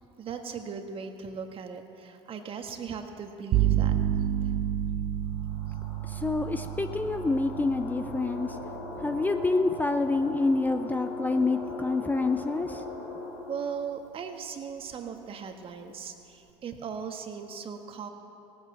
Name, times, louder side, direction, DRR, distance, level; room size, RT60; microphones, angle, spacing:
voice 1, 0.2-3.9 13.5-18.1, right 6 dB, 40° right, 5 dB, 1.5 m, -38 dB
sound 1, 3.5-11.2, right 11 dB, 55° right, 0.8 m, -31 dB
sound 2, 5.3-13.7, left 2 dB, 85° left, 3.7 m, -40 dB
voice 2, 6.1-8.6 9.0-12.8, left 3 dB, 10° left, 7 dB, 0.6 m, -27 dB
17.0 x 9.0 x 7.1 m, 3.0 s
hypercardioid pair, 85°, 14 cm